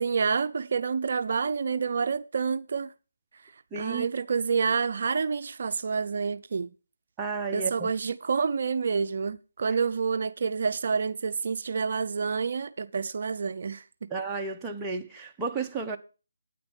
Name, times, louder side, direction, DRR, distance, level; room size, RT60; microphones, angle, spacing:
voice 1, 0.0-2.9 3.4-6.7 7.5-14.1, right 5 dB, 50° right, 0.5 m, -28 dB
voice 2, 3.7-4.1 7.2-7.9 14.1-16.0, right 4 dB, 10° right, 0.8 m, -32 dB
9.2 x 9.0 x 5.3 m
figure-of-eight pair, 160°, 0 cm